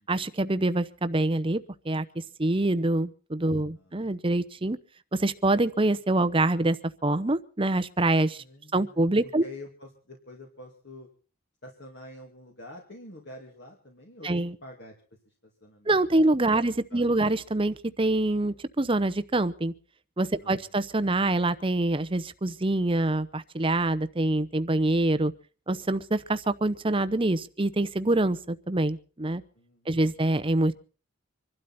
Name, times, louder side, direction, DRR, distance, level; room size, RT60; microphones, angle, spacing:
voice 1, 0.1-2.1 2.4-4.8 5.1-6.8 7.0-8.4 8.7-9.4 14.2-14.5 15.9-19.7 20.2-25.3 25.7-29.4 29.9-30.7, right 2 dB, 25° right, 13 dB, 0.8 m, -25 dB
voice 2, 3.6-4.0 8.4-11.1 11.6-14.9 15.3-15.9 16.2-16.3 16.6-17.3 20.4-20.7 29.5-30.1, left 1 dB, 55° left, 1 dB, 2.5 m, -47 dB
25.5 x 12.0 x 4.2 m, 0.38 s
head